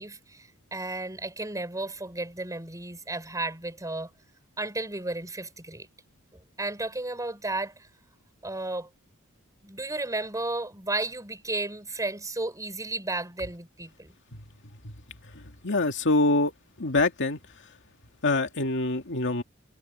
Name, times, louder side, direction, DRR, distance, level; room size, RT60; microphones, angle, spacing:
voice 1, 0.0-4.1 4.6-5.9 6.3-7.9 8.4-8.9 9.6-14.1, right 2 dB, 15° right, 7.0 m, -33 dB
voice 2, 15.6-16.5 16.8-17.4 18.2-19.4, left 2 dB, 60° left, 2.4 m, -24 dB
head